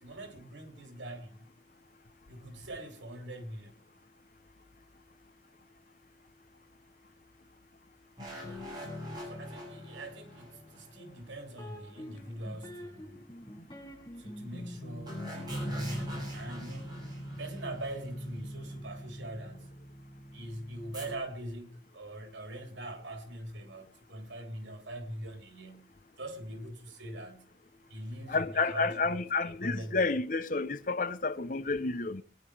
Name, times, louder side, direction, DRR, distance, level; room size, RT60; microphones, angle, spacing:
voice 1, 0.0-1.5 2.3-3.8 9.2-13.2 14.2-17.0 17.3-19.8 20.3-25.9 26.2-27.5 27.9-30.1, right 1 dB, 85° right, 3.2 m, -43 dB
sound 1, 8.2-11.7 15.1-18.4 20.9-21.2, left 1 dB, 20° right, 7.1 m, -44 dB
sound 2, 11.6-21.3, right 1 dB, 25° left, 5.5 m, -43 dB
voice 2, 28.3-32.2, left 3 dB, 45° left, 0.8 m, -30 dB
23.0 x 9.8 x 4.9 m
head